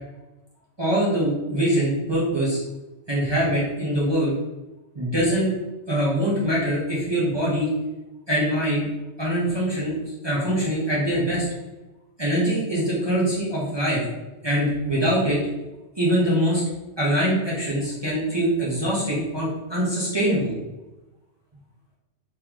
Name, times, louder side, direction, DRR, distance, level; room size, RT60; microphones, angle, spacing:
voice 1, 0.8-2.6 3.1-4.3 4.9-5.5 5.9-7.7 8.3-8.9 9.2-10.0 10.2-11.4 12.2-14.0 14.4-15.4 16.0-16.6 17.0-20.5, equal, 25° right, -7 dB, 0.8 m, -23 dB
3.7 x 3.2 x 2.9 m, 1.0 s
omnidirectional pair, 1.2 m